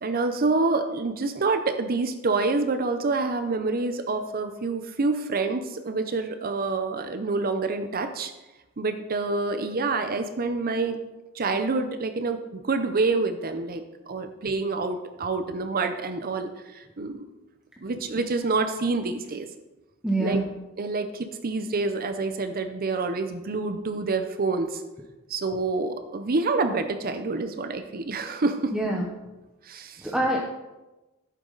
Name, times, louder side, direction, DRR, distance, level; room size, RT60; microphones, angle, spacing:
voice 1, 0.0-8.3 8.8-11.0 11.3-17.2 17.8-19.5 20.2-20.4 20.8-24.8 25.3-28.7 29.6-30.1, right 3 dB, 45° right, 8 dB, 0.7 m, -27 dB
voice 2, 20.0-20.5 28.7-29.1 30.0-30.4, right 1 dB, 5° right, -1 dB, 0.8 m, -25 dB
11.5 x 8.3 x 4.0 m, 1.1 s
head